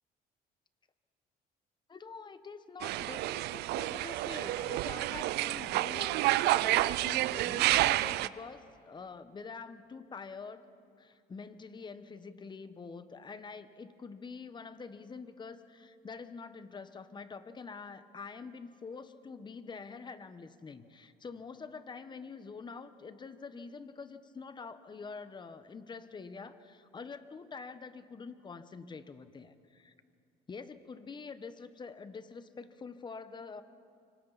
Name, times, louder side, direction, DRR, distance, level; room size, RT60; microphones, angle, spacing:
voice 1, 1.9-10.7 11.0-29.9 30.5-33.6, left 5 dB, 25° left, 12 dB, 1.0 m, -46 dB
sound 1, 2.8-8.3, right 17 dB, 80° right, 0.4 m, -29 dB
25.5 x 25.0 x 4.1 m, 2.4 s
cardioid pair, 110°, 17 cm